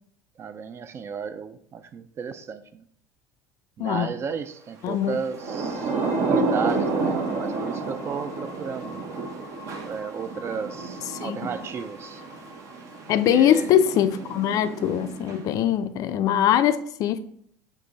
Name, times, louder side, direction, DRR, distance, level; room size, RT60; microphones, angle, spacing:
voice 1, 0.4-2.8 3.8-9.0 9.9-12.2 13.3-13.7, right 6 dB, 35° right, 0.4 m, -34 dB
voice 2, 4.8-5.2 11.2-11.4 13.1-17.2, left 10 dB, 55° left, 0.3 m, -22 dB
Thunder / Rain, 5.2-15.7, right 3 dB, 55° right, 0.8 m, -30 dB
sound 1, 5.4-13.2, left 3 dB, 85° right, 1.8 m, -45 dB
4.6 x 2.6 x 3.9 m
supercardioid pair, 90°, 7 cm